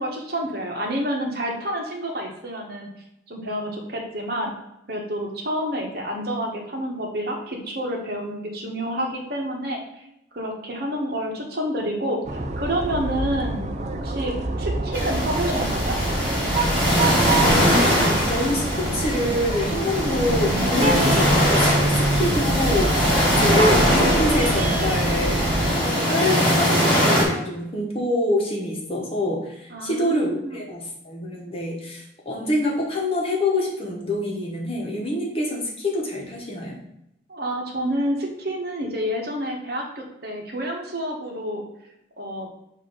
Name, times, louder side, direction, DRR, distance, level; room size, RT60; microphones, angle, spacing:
voice 1, 0.0-2.9 3.3-4.5 4.9-10.0 10.3-13.6 14.0-16.0 29.7-30.6 37.3-41.6 42.2-42.5, equal, 50° right, 0 dB, 1.3 m, -29 dB
sound 1, 12.2-25.7, right 2 dB, 35° right, 0.5 m, -26 dB
sound 2, 14.9-27.2, equal, 10° left, 2.2 m, -21 dB
voice 2, 17.4-36.8, left 1 dB, 30° left, -1 dB, 1.2 m, -26 dB
7.3 x 2.8 x 5.5 m, 0.83 s
head